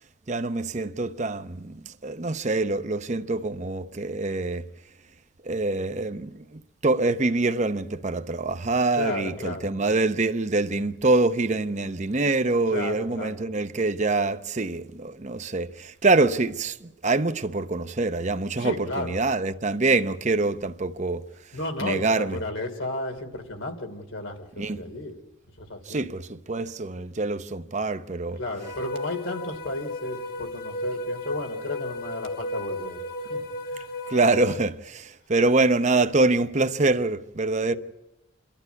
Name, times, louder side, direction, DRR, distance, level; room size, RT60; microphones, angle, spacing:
voice 1, 0.3-4.6 5.4-21.3 21.8-22.4 24.6-24.8 25.9-28.4 34.1-37.8, right 3 dB, 35° right, 0.7 m, -25 dB
voice 2, 8.9-9.8 12.7-13.3 18.6-19.2 21.5-25.2 25.6-26.0 28.3-34.0 37.7-37.8, left 2 dB, 85° left, 3.1 m, -34 dB
sound 1, 28.6-34.6, left 1 dB, 50° left, 1.3 m, -34 dB
28.0 x 12.0 x 9.5 m
head